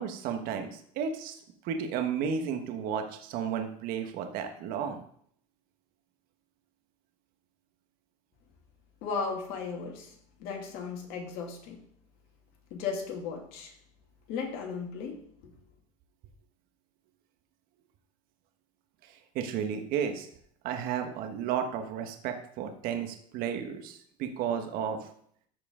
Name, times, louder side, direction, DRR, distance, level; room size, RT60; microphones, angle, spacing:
voice 1, 0.0-1.4 1.6-5.0 19.3-20.3 20.6-25.1, right 7 dB, 60° right, 6 dB, 1.3 m, -33 dB
voice 2, 9.0-10.1 10.4-11.8 12.7-13.7 14.3-15.1, left 5 dB, 65° left, 1 dB, 2.4 m, -35 dB
14.0 x 4.8 x 3.8 m, 0.63 s
supercardioid pair, 95°, 17 cm